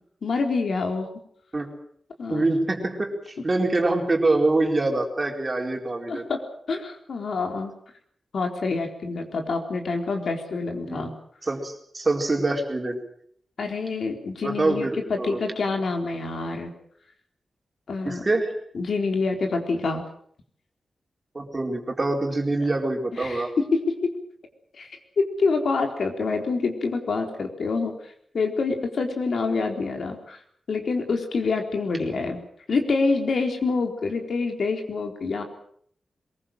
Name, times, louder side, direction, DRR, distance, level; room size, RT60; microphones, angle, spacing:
voice 1, 0.2-1.1 2.2-2.4 6.1-6.4 6.7-7.7 8.3-11.1 13.6-16.7 17.9-18.2 18.7-20.0 23.2-24.1 24.7-30.4 30.7-32.4 32.7-35.4, left 4 dB, 60° left, 4 dB, 4.1 m, -26 dB
voice 2, 2.3-6.2 10.8-11.1 11.4-13.0 14.4-15.4 18.0-18.5 21.3-23.5, right 2 dB, 25° right, 2 dB, 4.4 m, -25 dB
23.0 x 22.0 x 7.6 m, 0.64 s
wide cardioid pair, 145°, 0 cm